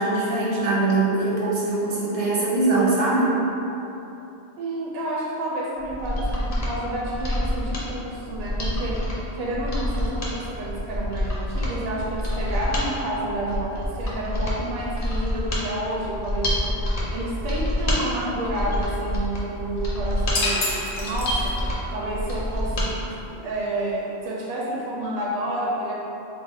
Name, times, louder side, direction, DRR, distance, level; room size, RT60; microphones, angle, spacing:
voice 1, 0.0-3.4, right 2 dB, 85° right, -7 dB, 1.3 m, -22 dB
voice 2, 4.6-9.1 9.3-21.6 21.9-23.1 23.3-25.9, right 1 dB, 70° right, -5 dB, 0.8 m, -30 dB
Mechanisms, 5.8-22.9 23.2-23.3, left 1 dB, 40° left, 0.7 m, -27 dB
sound 1, 20.3-21.8, left 2 dB, 80° left, 0.9 m, -28 dB
4.0 x 2.0 x 4.1 m, 2.9 s
omnidirectional pair, 1.1 m